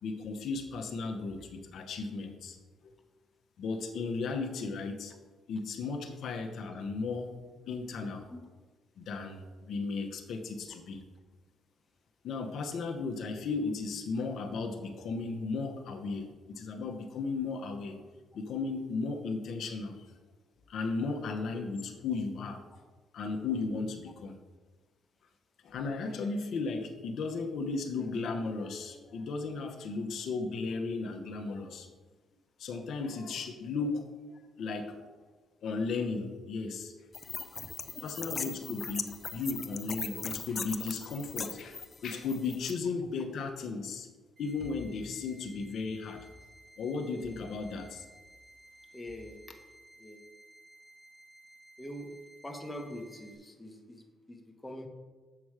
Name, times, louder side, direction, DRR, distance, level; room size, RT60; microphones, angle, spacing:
voice 1, 0.0-2.6 3.6-5.1 5.5-7.3 7.7-8.3 9.0-11.0 12.2-18.0 18.3-20.1 20.7-22.6 23.1-24.4 25.6-31.9 32.6-34.2 34.6-35.0 35.6-36.9 38.0-44.1 44.4-46.3 46.8-48.0, left 4 dB, 70° left, 3 dB, 0.9 m, -35 dB
sound 1, 37.1-42.7, left 5 dB, 40° left, 0.6 m, -39 dB
sound 2, 44.4-53.4, right 1 dB, 50° right, 2.8 m, -57 dB
voice 2, 48.9-49.4 50.0-50.2 51.8-52.1 52.4-54.9, equal, 10° left, 2 dB, 1.1 m, -44 dB
7.5 x 6.0 x 4.8 m, 1.3 s
cardioid pair, 90°, 0 cm